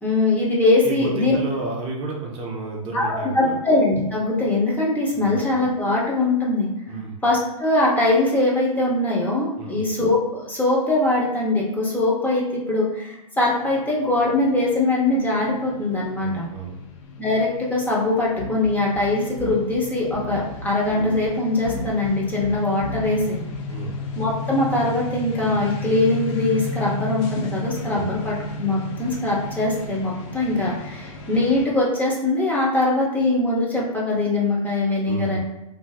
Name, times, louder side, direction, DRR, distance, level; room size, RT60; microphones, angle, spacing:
voice 1, 0.0-1.4 2.9-6.7 7.2-16.5 17.2-23.4 24.2-35.4, left 2 dB, 10° left, -5 dB, 0.7 m, -22 dB
voice 2, 0.8-3.6 5.1-5.4 6.9-7.2 9.6-9.8 16.1-16.8 23.7-24.0 27.9-28.1 35.0-35.4, right 3 dB, 30° right, -2 dB, 0.6 m, -31 dB
sound 1, 13.6-31.7, left 2 dB, 50° left, 0.6 m, -34 dB
sound 2, 18.4-19.8 20.1-21.3 21.6-22.1 22.4-23.3 23.5-23.6, equal, 85° left, 1.0 m, -34 dB
2.9 x 2.6 x 2.3 m, 0.91 s
hypercardioid pair, 125°, 19 cm